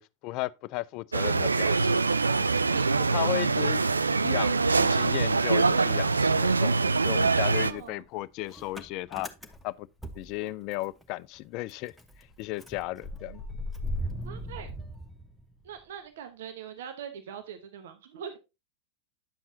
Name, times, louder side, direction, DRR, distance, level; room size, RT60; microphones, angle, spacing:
voice 1, 0.0-2.5 3.1-3.8 4.2-9.3 9.6-9.9 10.2-11.9 12.4-13.4, left 18 dB, 40° left, 0.4 m, -35 dB
sound 1, 1.1-7.7, right 4 dB, 80° right, 0.4 m, -24 dB
voice 2, 2.7-3.2 7.6-8.0 14.2-14.7 15.6-18.4, right 8 dB, 55° right, 1.0 m, -42 dB
Motor vehicle (road) / Engine starting, 4.9-6.1 6.4-11.0 11.4-11.5 11.7-15.8, equal, 5° left, 1.0 m, -39 dB
9.7 x 7.3 x 2.7 m
figure-of-eight pair, 90°, 0 cm